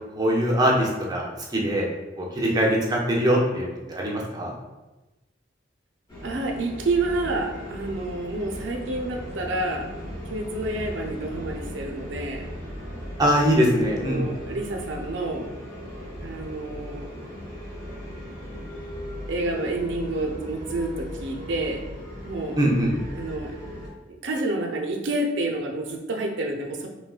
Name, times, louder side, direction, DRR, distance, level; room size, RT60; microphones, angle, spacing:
voice 1, 0.2-1.9 2.2-4.5 13.2-14.2 22.6-22.9, equal, 20° right, -3 dB, 0.5 m, -22 dB
sound 1, 6.1-23.9, equal, 25° left, 0.9 m, -37 dB
voice 2, 6.2-9.9 10.3-12.5 13.6-15.5 16.2-17.1 19.3-21.8 22.2-22.6 23.1-23.6 24.2-26.9, right 2 dB, 70° right, 2 dB, 0.4 m, -29 dB
3.5 x 2.2 x 2.3 m, 1.1 s
head